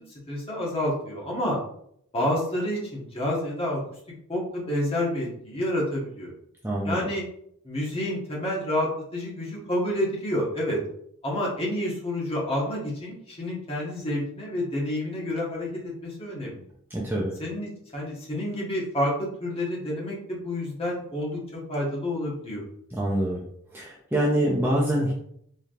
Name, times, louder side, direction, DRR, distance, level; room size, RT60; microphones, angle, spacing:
voice 1, 0.3-1.6 2.1-3.8 4.3-6.3 6.8-7.2 7.6-10.8 11.2-15.7 16.0-16.6 17.4-19.1 19.4-21.4 21.7-22.6, left 1 dB, 25° left, -4 dB, 1.2 m, -29 dB
voice 2, 6.6-7.1 16.9-17.4 22.9-23.4 23.7-25.1, right 1 dB, 10° right, -4 dB, 0.5 m, -25 dB
4.2 x 3.4 x 2.5 m, 0.69 s
head